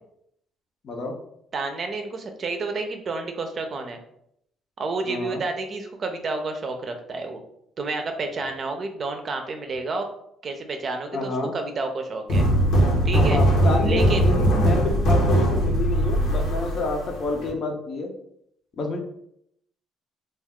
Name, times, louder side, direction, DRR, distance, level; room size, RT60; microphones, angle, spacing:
voice 1, 0.8-1.2 5.0-5.4 11.1-11.6 13.1-18.1 18.8-19.0, left 2 dB, 55° left, 3 dB, 0.6 m, -28 dB
voice 2, 1.5-4.0 4.8-7.4 7.8-10.1 10.4-12.4 13.0-13.4 13.8-14.3, right 3 dB, 45° right, 5 dB, 0.5 m, -30 dB
sound 1, 12.3-17.5, right 1 dB, 80° left, 0.9 m, -20 dB
2.3 x 2.3 x 3.5 m, 0.74 s
cardioid pair, 95°, 0 cm